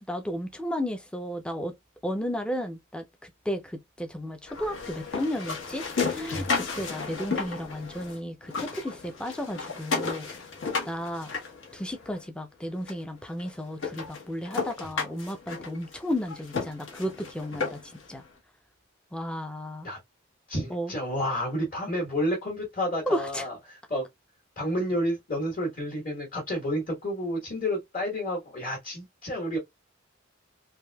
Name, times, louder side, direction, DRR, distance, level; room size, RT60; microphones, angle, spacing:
voice 1, 0.1-1.7 2.0-10.3 10.8-11.3 11.7-17.8 18.1-18.2 19.1-19.9 20.7-20.9 23.1-23.5, equal, 5° left, 0.4 m, -33 dB
sound 1, 4.5-8.2 8.4-12.2 12.9-13.0 13.4-13.5 13.8-18.0, left 4 dB, 70° left, 1.1 m, -33 dB
voice 2, 20.5-24.1 24.6-29.6, equal, 40° left, 1.2 m, -30 dB
3.4 x 2.5 x 2.2 m
head